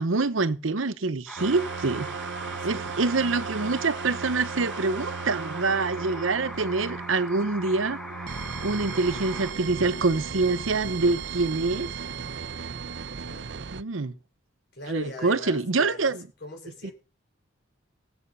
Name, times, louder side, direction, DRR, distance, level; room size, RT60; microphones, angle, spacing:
voice 1, 0.0-2.1 2.6-8.0 8.6-11.9 13.7-14.1 14.9-16.2 16.8-16.9, right 3 dB, 80° right, 0.9 m, -26 dB
sound 1, 1.3-9.5, equal, ahead, 1.2 m, -40 dB
sound 2, 1.4-13.8, right 6 dB, 60° right, 0.6 m, -36 dB
voice 2, 2.4-2.9 13.2-13.6 14.7-16.9, left 2 dB, 55° left, 4.0 m, -41 dB
17.0 x 7.9 x 5.5 m
head